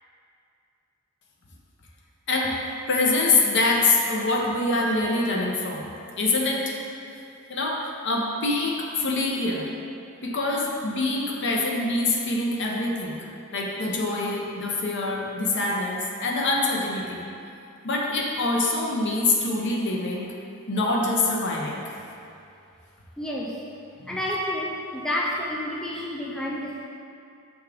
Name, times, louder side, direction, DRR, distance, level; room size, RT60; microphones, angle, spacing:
voice 1, 2.9-5.9 6.2-6.7 7.5-9.7 10.2-13.2 13.5-17.2 17.8-20.3 20.7-21.9 24.0-24.2, left 2 dB, 55° left, -1 dB, 0.8 m, -25 dB
voice 2, 23.2-23.7 24.1-26.9, left 1 dB, 5° left, -4 dB, 0.4 m, -30 dB
6.3 x 3.6 x 4.9 m, 2.5 s
head